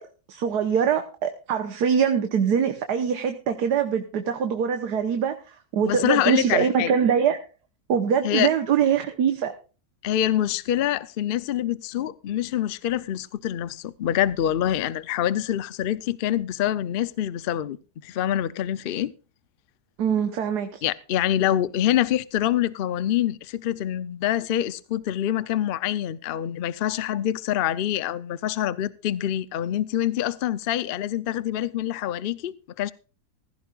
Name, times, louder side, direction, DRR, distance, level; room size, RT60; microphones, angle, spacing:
voice 1, 0.3-7.4 7.9-9.5 20.0-20.8, right 7 dB, 75° right, 1.6 m, -23 dB
voice 2, 5.9-6.9 8.2-8.5 10.0-17.8 18.0-19.1 20.8-32.9, left 11 dB, 65° left, 0.5 m, -25 dB
16.0 x 15.0 x 2.4 m
omnidirectional pair, 1.8 m